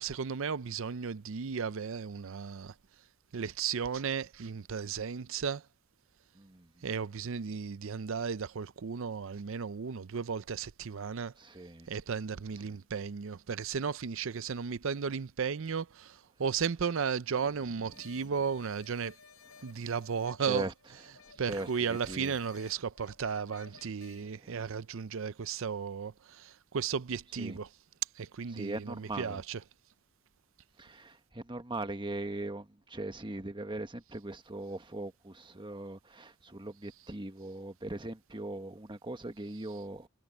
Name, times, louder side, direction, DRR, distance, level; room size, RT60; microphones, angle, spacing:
voice 1, 0.0-2.7 3.3-5.6 6.8-11.3 11.9-19.2 19.6-20.7 21.4-27.7 28.2-29.6, right 6 dB, 65° right, 0.6 m, -35 dB
voice 2, 6.3-6.9 11.4-11.9 12.6-12.8 19.6-19.7 20.5-20.7 21.4-22.3 24.4-24.6 27.4-27.6 28.5-29.4 30.8-40.1, right 2 dB, 25° right, 1.3 m, -40 dB
sound 1, 17.9-24.3, left 5 dB, 80° left, 5.8 m, -56 dB
head